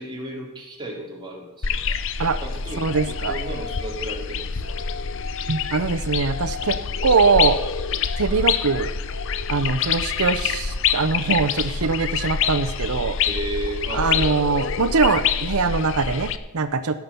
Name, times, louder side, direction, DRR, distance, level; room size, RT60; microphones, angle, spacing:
voice 1, 0.0-1.8 2.4-4.8 13.2-14.1, right 1 dB, 20° right, -1 dB, 2.7 m, -33 dB
sound 1, 1.6-16.4, left 6 dB, 60° left, 0.7 m, -26 dB
voice 2, 2.8-3.4 5.5-6.8 7.0-7.6 8.2-8.9 9.5-13.2 13.9-17.0, right 4 dB, 80° right, 9 dB, 0.7 m, -22 dB
16.5 x 6.0 x 6.9 m, 1.1 s
head